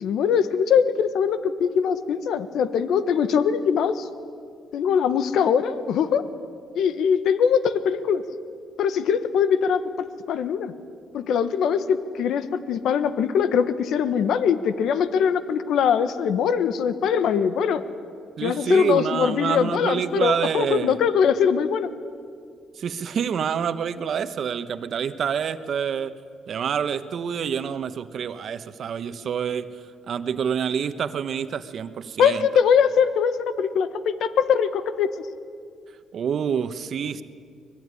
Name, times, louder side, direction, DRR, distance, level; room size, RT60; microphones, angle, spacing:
voice 1, 0.0-4.0 4.7-6.2 6.7-8.2 8.8-9.8 10.3-10.7 11.1-17.8 18.4-21.9 32.2-35.1, left 7 dB, 75° left, 12 dB, 1.3 m, -22 dB
voice 2, 18.4-21.0 22.7-26.1 26.5-32.5 36.1-37.2, right 7 dB, 60° right, 11 dB, 1.2 m, -27 dB
24.0 x 21.0 x 9.9 m, 2.2 s
cardioid pair, 90°, 0 cm